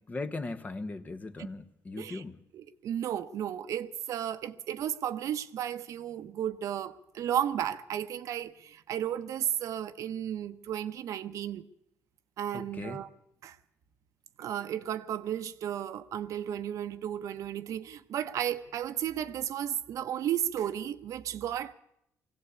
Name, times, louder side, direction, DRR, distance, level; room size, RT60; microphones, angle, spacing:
voice 1, 0.1-2.4 12.5-13.0, left 3 dB, 25° left, 1.3 m, -38 dB
voice 2, 2.5-11.6 12.4-13.1 13.4-13.6 14.4-21.7, right 10 dB, 65° right, 1.0 m, -34 dB
21.0 x 16.5 x 8.3 m
cardioid pair, 105°, 6 cm